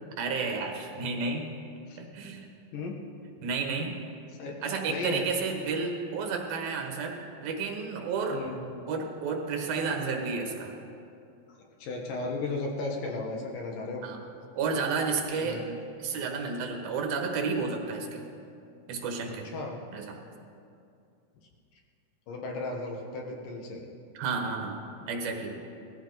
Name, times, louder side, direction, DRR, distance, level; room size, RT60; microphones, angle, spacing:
voice 1, 0.2-1.5 2.0-2.5 3.4-4.0 4.6-8.4 8.9-10.8 14.0-14.2 14.6-15.6 16.0-18.3 18.9-19.5 19.9-20.2 24.1-24.8 25.1-25.6, right 4 dB, 90° right, 3 dB, 3.3 m, -31 dB
voice 2, 4.9-5.3 8.3-8.6 11.5-14.0 15.4-15.6 19.3-19.8 22.3-23.8, left 3 dB, 70° left, 0 dB, 3.1 m, -35 dB
18.5 x 13.5 x 4.0 m, 2.5 s
omnidirectional pair, 4.1 m